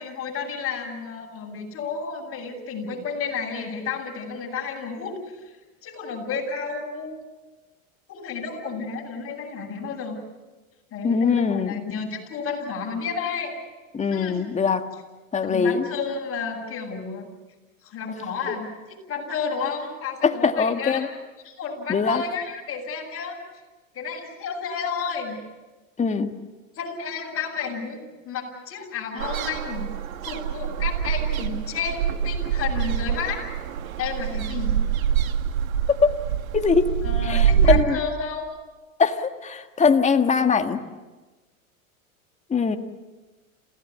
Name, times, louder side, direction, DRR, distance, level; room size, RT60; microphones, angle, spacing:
voice 1, 0.0-5.6 5.8-7.1 8.1-10.2 10.9-13.5 14.1-14.4 15.4-17.3 17.8-18.7 19.1-21.1 21.4-23.4 23.9-25.4 26.8-29.9 30.2-33.4 34.0-34.8 37.0-38.5, left 5 dB, 35° left, 1 dB, 7.8 m, -31 dB
voice 2, 11.0-11.8 13.9-14.9 15.3-15.8 20.2-21.1 21.9-22.2 26.0-26.3 35.9-36.1 36.5-36.9 37.2-38.0 39.0-40.8 42.5-42.8, left 5 dB, 15° left, 6 dB, 1.7 m, -21 dB
sound 1, 29.2-37.8, right 9 dB, 80° right, 2.0 m, -25 dB
28.0 x 17.0 x 8.6 m, 1.2 s
hypercardioid pair, 115°, 41 cm